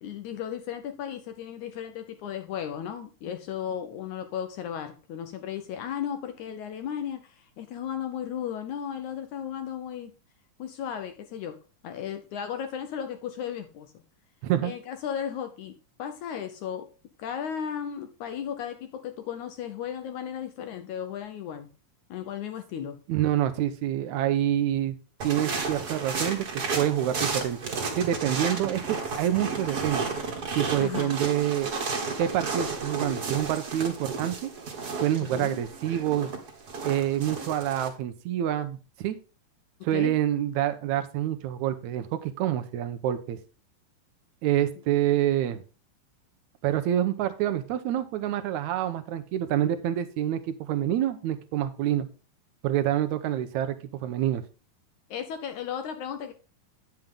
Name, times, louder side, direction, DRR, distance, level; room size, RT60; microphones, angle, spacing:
voice 1, 0.0-10.1 10.6-11.6 11.8-13.9 14.6-15.7 16.0-16.9 17.2-21.7 22.1-23.0 30.8-31.2 35.2-35.6 39.9-40.2 55.1-56.3, left 9 dB, 70° left, 8 dB, 1.9 m, -35 dB
voice 2, 14.4-14.7 23.1-25.0 25.2-27.6 27.9-30.1 30.6-31.7 32.2-34.5 35.0-36.3 36.8-39.2 39.8-43.4 44.4-45.6 46.6-52.1 52.6-54.4, right 11 dB, 80° right, 9 dB, 1.7 m, -27 dB
sound 1, 25.2-37.9, right 4 dB, 40° right, 1.4 m, -33 dB
9.1 x 7.3 x 3.7 m, 0.35 s
omnidirectional pair, 4.1 m